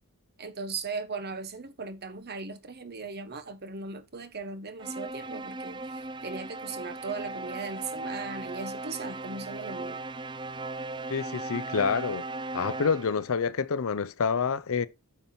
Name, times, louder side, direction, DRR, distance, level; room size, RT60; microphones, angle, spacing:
voice 1, 0.4-10.0, right 4 dB, 45° right, 1.2 m, -38 dB
sound 1, 4.8-13.3, right 2 dB, 20° right, 0.5 m, -37 dB
voice 2, 11.1-12.2 12.5-14.9, left 5 dB, 65° left, 0.6 m, -27 dB
9.0 x 5.9 x 4.3 m
head